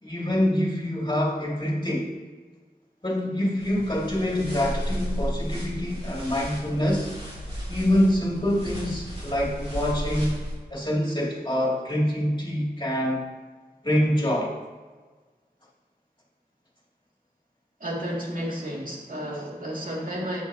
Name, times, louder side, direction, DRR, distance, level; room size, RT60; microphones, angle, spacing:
voice 1, 0.0-2.1 3.0-7.1 7.7-10.4 10.7-13.3 13.8-14.6, left 1 dB, 30° left, 2.3 m, -25 dB
sound 1, 3.6-10.6, equal, 35° right, 2.5 m, -33 dB
voice 2, 17.8-20.4, equal, 55° right, 2.2 m, -32 dB
9.7 x 8.3 x 2.8 m
wide cardioid pair, 60°, 17 cm